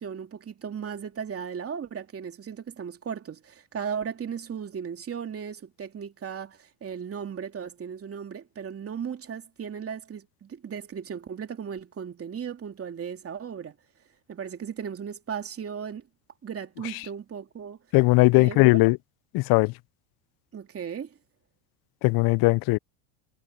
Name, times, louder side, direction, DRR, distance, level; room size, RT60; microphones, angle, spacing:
voice 1, 0.0-13.7 14.3-16.1 16.4-17.8 18.3-18.6 20.5-21.2, right 7 dB, 30° right, 2.9 m, -36 dB
voice 2, 17.9-19.0 19.3-19.7 22.0-22.8, left 24 dB, 50° left, 0.6 m, -19 dB
hypercardioid pair, 90°, 48 cm